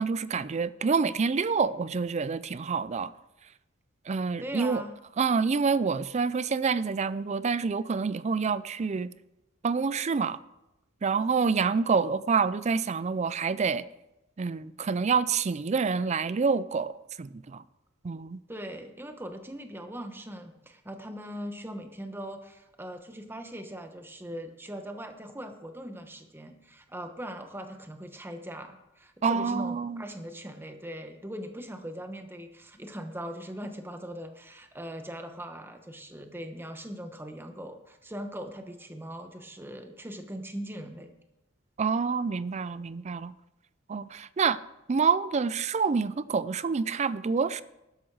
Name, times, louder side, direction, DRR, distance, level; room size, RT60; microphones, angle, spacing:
voice 1, 0.0-3.1 4.1-4.8 5.2-9.1 9.6-10.4 11.0-13.8 14.4-17.6 18.0-18.4 29.2-30.0 41.8-43.3 43.9-44.6 44.9-47.6, right 5 dB, 35° right, 0.4 m, -27 dB
voice 2, 4.4-5.0 18.5-41.1, equal, 10° right, 1.1 m, -40 dB
12.5 x 10.5 x 4.7 m
head